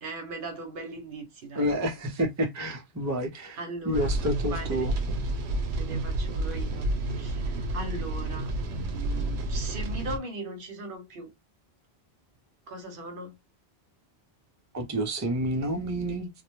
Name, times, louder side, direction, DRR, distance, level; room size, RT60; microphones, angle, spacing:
voice 1, 0.0-1.7 3.6-4.1 4.4-4.9 5.7-11.3 12.7-13.3, right 2 dB, 60° right, 0.8 m, -39 dB
voice 2, 1.5-3.6 3.8-4.9 14.7-16.3, equal, 25° right, 0.4 m, -29 dB
sound 1, 3.9-10.2, right 2 dB, 90° right, 0.8 m, -30 dB
2.3 x 2.1 x 3.0 m
omnidirectional pair, 1.1 m